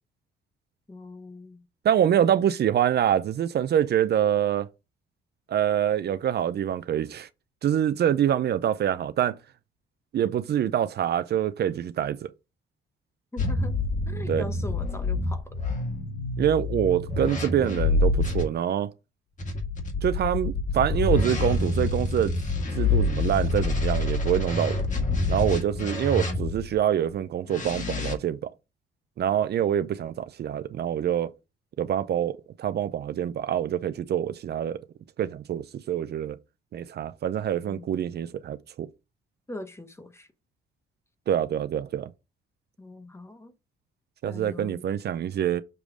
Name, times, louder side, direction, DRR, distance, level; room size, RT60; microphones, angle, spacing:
voice 1, 0.9-1.6 13.3-13.8 14.1-15.6 37.6-38.0 39.5-40.3 42.8-43.5 44.2-44.9, left 2 dB, 15° left, 1.0 m, -41 dB
voice 2, 1.8-4.7 5.5-7.3 7.6-9.4 10.1-12.3 14.3-14.4 16.4-18.9 20.0-22.3 22.8-24.8 25.3-28.4 29.2-31.3 31.8-34.8 35.2-36.4 36.7-38.9 41.3-42.1 44.2-45.6, right 10 dB, 55° right, 0.5 m, -25 dB
sound 1, 13.4-18.4 19.4-26.7 27.5-28.1, left 3 dB, 40° left, 1.8 m, -27 dB
6.9 x 3.0 x 4.9 m
cardioid pair, 90°, 20 cm